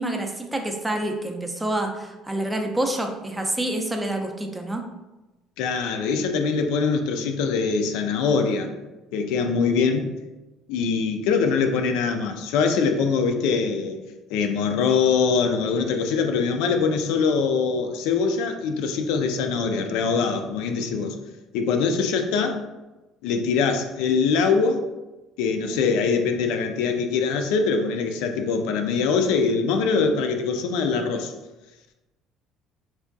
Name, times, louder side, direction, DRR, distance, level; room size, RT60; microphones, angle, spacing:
voice 1, 0.0-4.8, right 1 dB, 10° right, 4 dB, 0.4 m, -27 dB
voice 2, 5.6-8.7 9.1-10.1 10.7-14.0 14.3-21.2 21.5-22.6 23.2-24.8 25.4-31.3, left 5 dB, 90° left, 6 dB, 0.3 m, -23 dB
3.4 x 2.2 x 2.5 m, 1.1 s
cardioid pair, 115°, 0 cm